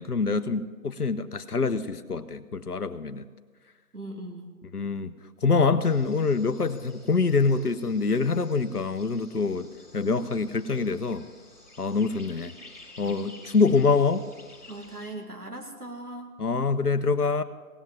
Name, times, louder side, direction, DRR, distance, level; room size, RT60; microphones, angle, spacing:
voice 1, 0.0-3.2 4.7-5.1 5.4-9.7 9.9-11.2 11.8-12.5 13.0-14.3 16.4-17.4, left 4 dB, 80° left, 11 dB, 0.9 m, -25 dB
voice 2, 3.9-4.5 13.0-13.3 14.7-16.3, right 1 dB, 85° right, 2 dB, 2.6 m, -39 dB
sound 1, 5.8-15.1, left 2 dB, 10° left, 1.9 m, -51 dB
17.5 x 7.2 x 7.4 m, 1.5 s
figure-of-eight pair, 170°, 45 cm